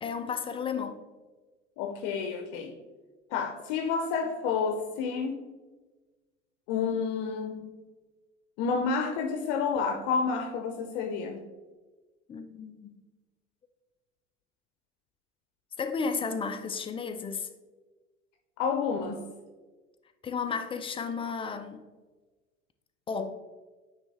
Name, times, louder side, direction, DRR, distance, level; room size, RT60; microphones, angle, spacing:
voice 1, 0.0-1.0 12.3-13.0 15.8-17.5 20.2-21.8 23.1-23.3, left 5 dB, 15° left, 8 dB, 0.4 m, -33 dB
voice 2, 1.8-2.8 3.3-5.4 6.7-7.7 8.6-11.4 18.6-19.3, left 5 dB, 50° left, 4 dB, 0.7 m, -30 dB
9.0 x 3.2 x 3.4 m, 1.3 s
figure-of-eight pair, 70°, 38 cm